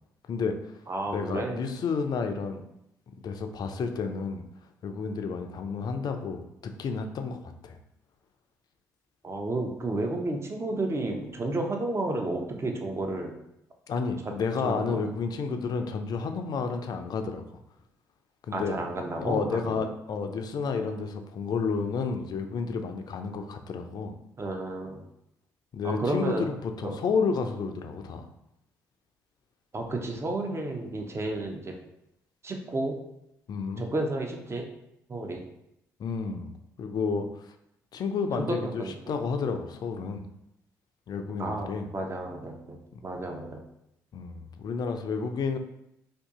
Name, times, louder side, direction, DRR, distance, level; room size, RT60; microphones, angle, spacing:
voice 1, 0.3-0.7 1.1-2.6 3.2-4.4 4.8-7.4 7.6-7.8 13.9-17.4 18.5-18.8 19.1-24.1 25.7-28.3 33.5-33.9 36.0-37.5 37.9-40.3 41.1-41.9 44.1-45.6, left 5 dB, 50° left, 6 dB, 0.4 m, -31 dB
voice 2, 0.9-1.6 9.2-13.3 14.6-15.0 18.5-19.8 24.4-25.0 25.8-26.5 26.8-26.9 29.7-31.7 32.4-33.0 33.8-34.7 35.1-35.4 38.6-38.9 41.4-43.6, right 2 dB, 30° right, 3 dB, 0.7 m, -32 dB
2.6 x 2.6 x 3.6 m, 0.81 s
hypercardioid pair, 45°, 9 cm